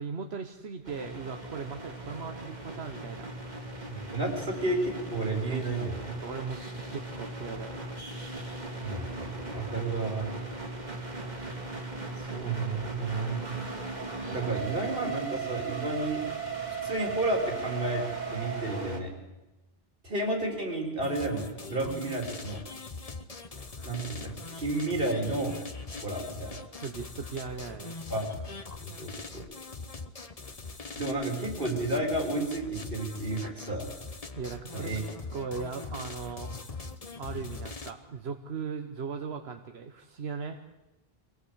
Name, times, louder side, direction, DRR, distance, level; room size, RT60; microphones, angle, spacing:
voice 1, 0.0-3.5 6.2-8.0 26.8-28.0 34.4-36.6 37.2-40.6, right 5 dB, 90° right, 6 dB, 1.4 m, -38 dB
sound 1, 0.8-19.0, right 3 dB, 45° right, 2.6 m, -38 dB
voice 2, 3.9-6.2 8.8-10.3 12.2-13.6 14.3-16.2 16.8-18.0 18.3-19.1 20.0-22.6 23.8-25.6 26.0-26.6 28.1-28.3 28.8-29.4 31.0-33.9 34.7-35.0, right 2 dB, 65° right, 2 dB, 4.0 m, -31 dB
sound 2, 21.0-37.9, left 3 dB, 40° left, 1.2 m, -42 dB
24.0 x 17.5 x 8.1 m, 1.0 s
omnidirectional pair, 1.0 m